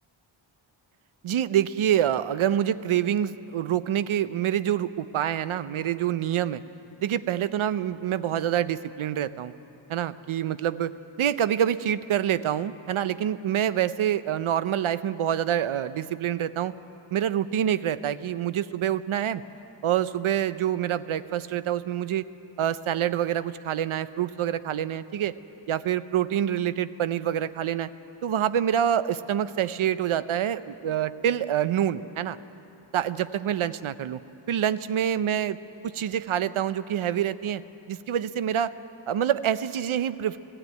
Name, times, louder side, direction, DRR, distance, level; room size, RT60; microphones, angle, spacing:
voice 1, 1.2-6.6 7.0-9.5 9.9-16.7 17.1-19.4 19.8-22.3 22.6-25.3 25.7-27.9 28.2-32.4 32.9-34.2 34.5-35.6 36.0-37.6 37.9-38.7 39.1-40.4, right 10 dB, 75° right, 14 dB, 0.7 m, -26 dB
18.0 x 16.0 x 9.4 m, 2.9 s
wide cardioid pair, 110°, 49 cm